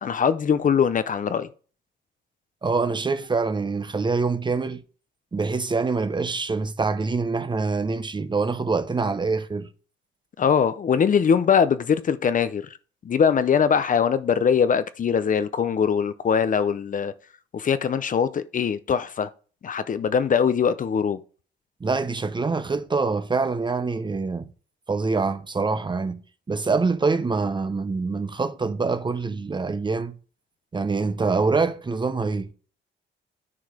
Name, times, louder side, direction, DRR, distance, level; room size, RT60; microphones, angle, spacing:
voice 1, 0.0-1.5 10.4-12.8 13.0-17.1 17.5-19.3 19.6-21.2, left 7 dB, 40° left, 0.6 m, -22 dB
voice 2, 2.6-4.8 5.3-9.7 21.8-24.5 24.9-26.2 26.5-30.2 30.7-32.5, right 4 dB, 25° right, 0.7 m, -25 dB
9.7 x 4.7 x 5.0 m
cardioid pair, 90°, 20 cm